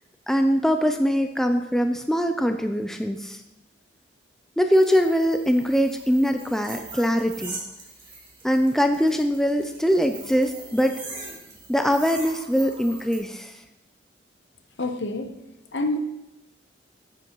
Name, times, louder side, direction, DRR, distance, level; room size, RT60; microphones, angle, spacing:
voice 1, 0.3-3.4 4.6-7.6 8.4-11.0 11.7-13.6, equal, ahead, 6 dB, 0.4 m, -22 dB
sound 1, 4.7-13.2, right 3 dB, 25° right, 2.6 m, -42 dB
voice 2, 14.8-15.3 15.7-16.0, left 2 dB, 65° left, 7 dB, 0.8 m, -27 dB
9.8 x 8.0 x 3.0 m, 0.96 s
head